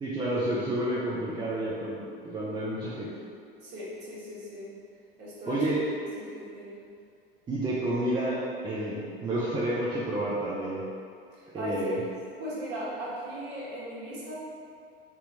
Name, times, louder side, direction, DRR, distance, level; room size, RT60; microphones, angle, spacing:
voice 1, 0.0-3.1 5.5-5.8 7.5-10.8 11.5-12.0, right 1 dB, 15° right, -8 dB, 0.5 m, -30 dB
voice 2, 3.6-4.7 5.2-5.6 6.1-6.8 11.3-11.9 12.4-14.4, equal, 35° right, -8 dB, 1.5 m, -38 dB
3.3 x 2.9 x 3.9 m, 2.3 s
figure-of-eight pair, 75°, 29 cm